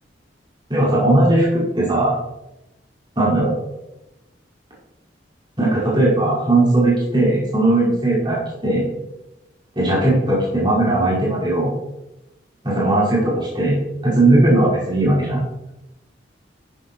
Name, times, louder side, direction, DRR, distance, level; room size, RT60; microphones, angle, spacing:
voice 1, 0.7-2.2 3.2-3.5 5.6-8.9 9.8-11.7 12.6-15.4, right 2 dB, 25° right, -7 dB, 5.3 m, -18 dB
12.5 x 9.8 x 4.7 m, 0.95 s
head